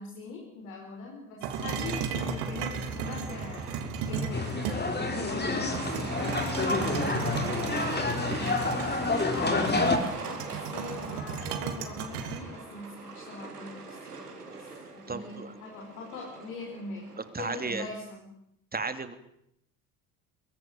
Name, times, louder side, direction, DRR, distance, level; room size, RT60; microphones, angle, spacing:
voice 1, 0.0-3.6 4.1-8.8 9.3-14.6 14.9-17.1 17.4-18.3, left 4 dB, 70° left, 0 dB, 5.0 m, -42 dB
sound 1, 1.4-5.1 5.7-12.4, right 7 dB, 60° right, 3.3 m, -35 dB
Truck, 1.5-17.3, right 4 dB, 85° right, 3.7 m, -42 dB
sound 2, 4.3-10.0, left 3 dB, 20° left, 4.6 m, -28 dB
voice 2, 15.1-15.5 17.3-17.9 18.7-19.2, right 4 dB, 20° right, 10 dB, 3.0 m, -33 dB
23.0 x 22.0 x 9.2 m, 0.77 s
figure-of-eight pair, 60°, 45 cm